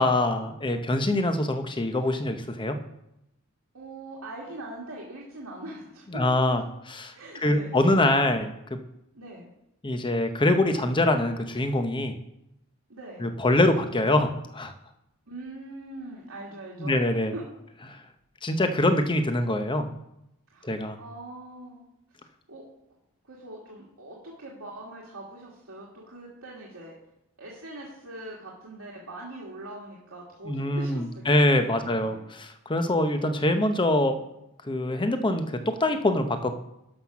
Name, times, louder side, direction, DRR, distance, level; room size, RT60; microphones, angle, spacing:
voice 1, 0.0-2.8 6.1-6.6 6.9-7.1 7.4-8.5 9.8-12.1 13.2-14.7 16.8-17.3 17.9-18.0 18.4-19.9 20.6-21.0 30.4-34.1 34.6-36.5, left 1 dB, 20° left, 7 dB, 0.8 m, -24 dB
voice 2, 3.7-6.2 6.5-6.6 7.1-7.8 9.1-9.5 12.9-13.3 15.3-17.1 17.3-17.4 20.5-21.9 22.5-22.7 23.2-27.0 27.4-32.3, right 1 dB, 85° right, -5 dB, 2.0 m, -42 dB
11.5 x 5.8 x 6.0 m, 0.85 s
head